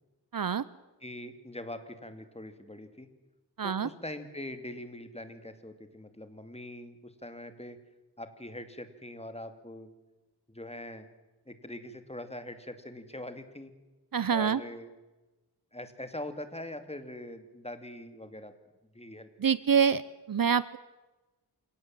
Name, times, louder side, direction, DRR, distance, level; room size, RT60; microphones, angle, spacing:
voice 1, 0.3-0.6 3.6-3.9 14.1-14.6 19.4-20.0 20.3-20.8, right 7 dB, 55° right, 18 dB, 0.7 m, -26 dB
voice 2, 1.0-3.1 3.6-7.8 8.2-9.9 10.5-11.1 11.5-13.7 14.3-14.9 15.7-18.5 18.9-19.3, left 1 dB, 15° left, 9 dB, 2.4 m, -42 dB
28.0 x 17.5 x 7.6 m, 1.1 s
wide cardioid pair, 80°, 41 cm